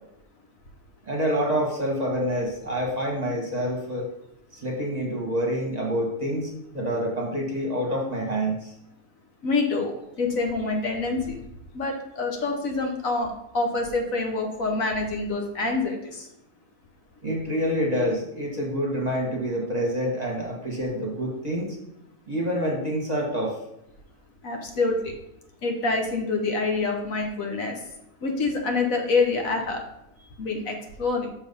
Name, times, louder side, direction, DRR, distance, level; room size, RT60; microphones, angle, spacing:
voice 1, 1.0-4.1 4.5-8.7 17.2-21.8 22.3-23.6, equal, 30° right, -2 dB, 1.2 m, -27 dB
voice 2, 9.4-11.4 11.7-16.3 24.4-25.1 25.6-27.8 28.2-29.8 30.4-31.3, left 3 dB, 60° left, 3 dB, 1.4 m, -26 dB
6.4 x 4.0 x 5.3 m, 0.84 s
omnidirectional pair, 1.7 m